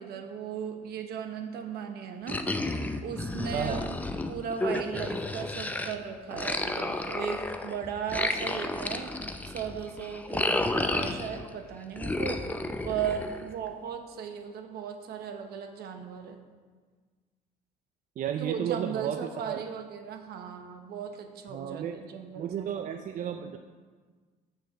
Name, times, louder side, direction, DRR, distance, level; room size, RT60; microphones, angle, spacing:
voice 1, 0.0-2.4 3.0-3.8 4.3-12.4 12.8-16.4 18.4-23.5, right 7 dB, 70° right, 5 dB, 1.1 m, -37 dB
sound 1, 2.3-5.9 6.3-11.5 12.0-13.7, left 2 dB, 10° left, 0.6 m, -32 dB
voice 2, 3.5-3.8 18.2-19.6 21.5-22.0 22.4-23.6, right 9 dB, 50° right, 7 dB, 0.5 m, -33 dB
7.1 x 6.3 x 6.9 m, 1.5 s
cardioid pair, 110°, 17 cm